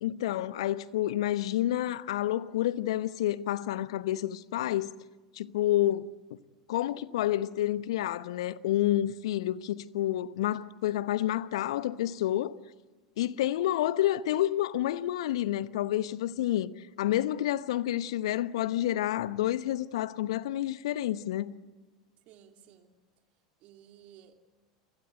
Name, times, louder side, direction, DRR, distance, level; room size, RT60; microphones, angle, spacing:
voice 1, 0.0-4.9 5.3-6.1 6.7-12.6 13.2-21.5, left 13 dB, 65° left, 0.9 m, -29 dB
voice 2, 22.3-22.9 23.6-24.4, right 9 dB, 45° right, 3.0 m, -55 dB
29.0 x 23.0 x 8.1 m
figure-of-eight pair, 80°, 3 cm